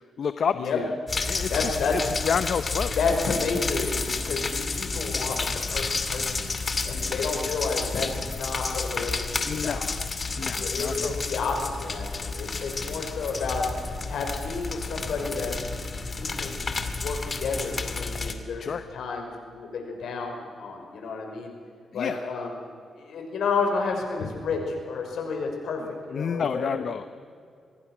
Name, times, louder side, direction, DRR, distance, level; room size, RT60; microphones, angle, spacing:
voice 1, 0.2-0.9 1.2-2.9 7.4-7.5 9.4-10.1 10.4-11.2 18.6-18.8 21.9-22.2 26.1-27.1, left 6 dB, 65° left, 11 dB, 0.8 m, -29 dB
sound 1, 1.1-18.3, left 4 dB, 40° left, 2.3 m, -31 dB
voice 2, 1.5-1.9 3.0-6.4 6.9-9.9 10.5-13.7 14.1-15.5 16.1-21.5 21.9-22.5 23.0-25.8 26.1-26.8, left 4 dB, 80° left, 3 dB, 5.3 m, -31 dB
25.0 x 21.0 x 6.2 m, 2.3 s
cardioid pair, 75°, 0 cm